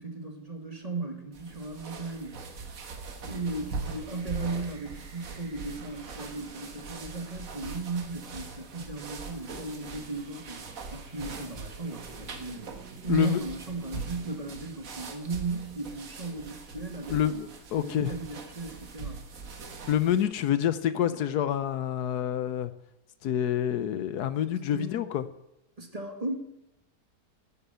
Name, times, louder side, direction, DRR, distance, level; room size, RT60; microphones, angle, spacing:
voice 1, 0.0-2.5 3.3-17.5 17.7-19.3 21.0-21.2 24.5-25.1 25.8-26.3, right 3 dB, 25° right, 4 dB, 1.8 m, -36 dB
sound 1, 1.3-20.3, right 4 dB, 55° right, 1.7 m, -42 dB
sound 2, 3.8-8.2 9.7-15.2, right 5 dB, 75° right, 2.1 m, -54 dB
voice 2, 13.1-13.4 17.1-18.1 19.9-22.7 23.2-25.2, left 10 dB, 75° left, 13 dB, 1.2 m, -27 dB
11.5 x 9.8 x 8.0 m, 0.86 s
omnidirectional pair, 1.8 m